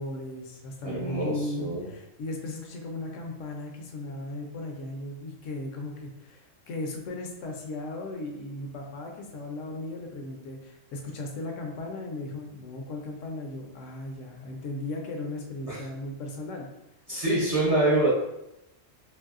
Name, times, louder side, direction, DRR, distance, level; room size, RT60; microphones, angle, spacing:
voice 1, 0.0-16.7, left 2 dB, 75° left, 2 dB, 0.9 m, -36 dB
voice 2, 0.8-1.8 15.7-15.8 17.1-18.1, right 2 dB, 40° right, -7 dB, 0.6 m, -25 dB
3.0 x 2.6 x 2.4 m, 0.87 s
omnidirectional pair, 1.3 m